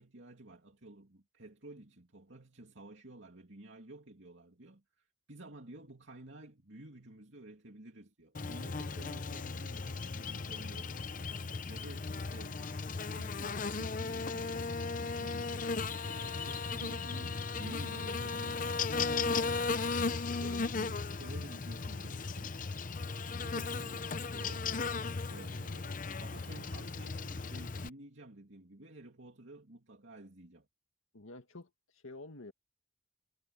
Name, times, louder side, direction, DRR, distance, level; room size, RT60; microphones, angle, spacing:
voice 1, 0.0-11.2 11.7-12.6 13.2-19.5 20.4-22.5 23.4-24.7 25.3-30.7, right 2 dB, 65° right, 2.7 m, -52 dB
Buzz, 8.3-27.9, left 4 dB, 40° left, 0.7 m, -36 dB
voice 2, 31.1-32.5, left 2 dB, 85° left, 2.1 m, -49 dB
head